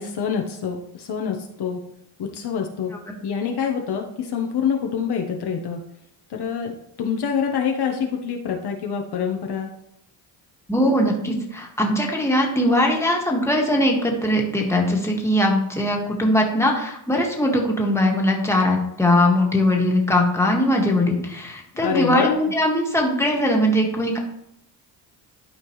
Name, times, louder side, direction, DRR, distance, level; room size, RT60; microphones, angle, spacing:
voice 1, 0.0-1.8 2.2-2.9 3.2-5.8 6.3-6.7 7.0-9.7 21.7-22.4, left 7 dB, 55° left, 2 dB, 1.2 m, -26 dB
voice 2, 10.7-24.2, left 1 dB, 5° left, -1 dB, 1.9 m, -20 dB
12.0 x 4.4 x 3.2 m, 0.76 s
cardioid pair, 90°, 46 cm